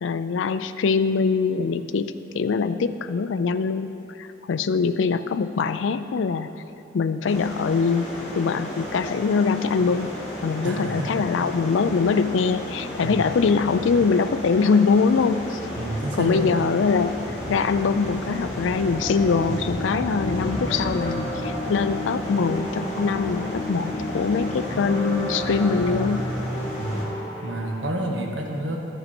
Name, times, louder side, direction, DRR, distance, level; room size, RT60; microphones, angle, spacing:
voice 1, 0.0-3.9 4.2-6.5 6.9-10.1 10.4-15.6 16.2-17.1 17.5-26.3, left 5 dB, 80° left, 12 dB, 0.4 m, -23 dB
sound 1, 7.2-27.0, equal, 35° left, 1.9 m, -33 dB
voice 2, 10.6-11.3 13.0-13.3 15.7-16.6 26.8-27.1 27.4-28.8, right 1 dB, 70° right, 1 dB, 1.2 m, -29 dB
sound 2, 18.7-28.0, equal, 60° left, 1.7 m, -34 dB
12.5 x 6.9 x 4.3 m, 2.9 s
head